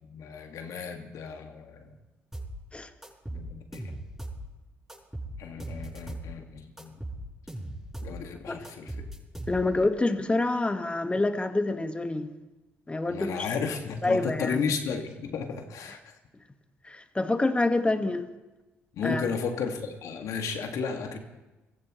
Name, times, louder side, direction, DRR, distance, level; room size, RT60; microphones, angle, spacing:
voice 1, 0.0-1.9 3.3-3.9 5.4-7.0 8.0-8.9 13.1-16.1 18.9-21.2, left 5 dB, 65° left, 4 dB, 2.1 m, -33 dB
sound 1, 2.3-2.6 3.0-4.4 4.9-6.3 6.8-8.2 8.6-9.9, right 1 dB, 5° right, 6.6 m, -38 dB
voice 2, 9.5-12.3 12.9-13.4 14.0-14.6 16.8-18.3 19.0-19.3, left 2 dB, 20° left, 8 dB, 1.5 m, -27 dB
23.5 x 15.0 x 3.2 m, 1.1 s
hypercardioid pair, 55°, 6 cm